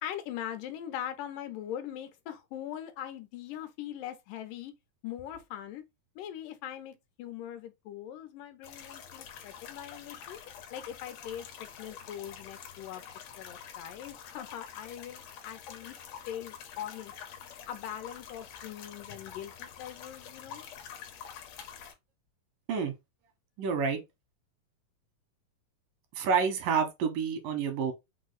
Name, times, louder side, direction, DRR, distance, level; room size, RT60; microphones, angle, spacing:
voice 1, 0.0-4.7 5.0-5.8 6.2-10.4 10.7-13.0 13.4-16.0 16.3-17.1 17.7-20.6, left 11 dB, 90° left, 2.3 m, -41 dB
sound 1, 8.6-21.9, left 8 dB, 70° left, 1.7 m, -47 dB
voice 2, 23.6-24.0 26.2-27.9, right 6 dB, 85° right, 2.8 m, -28 dB
6.1 x 2.0 x 3.8 m
omnidirectional pair, 3.8 m